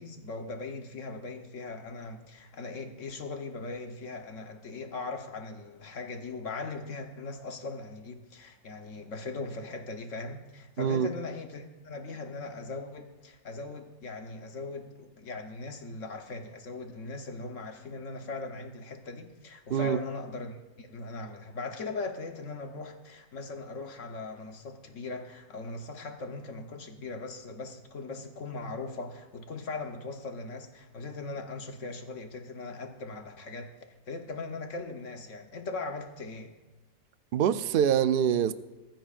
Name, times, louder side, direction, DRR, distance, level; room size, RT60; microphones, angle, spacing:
voice 1, 0.0-36.5, left 3 dB, 60° left, 1.4 m, -39 dB
voice 2, 10.8-11.1 19.7-20.0 37.3-38.5, right 9 dB, 70° right, 0.5 m, -25 dB
23.5 x 10.5 x 2.5 m
omnidirectional pair, 1.5 m